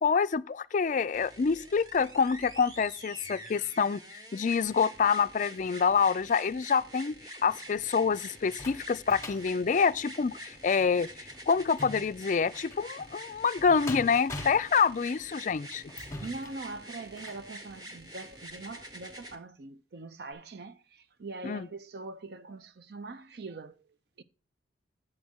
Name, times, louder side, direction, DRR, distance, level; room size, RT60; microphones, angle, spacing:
voice 1, 0.0-7.2 7.4-11.1 11.5-15.8 21.4-21.7, left 6 dB, 45° left, 0.3 m, -27 dB
sound 1, 1.1-19.4 20.3-20.4, right 1 dB, 20° right, 1.1 m, -46 dB
sound 2, 7.6-17.5 18.0-18.1 18.5-18.6, left 2 dB, 15° left, 1.0 m, -45 dB
voice 2, 16.2-24.2, right 3 dB, 60° right, 0.6 m, -43 dB
8.6 x 7.5 x 3.5 m
head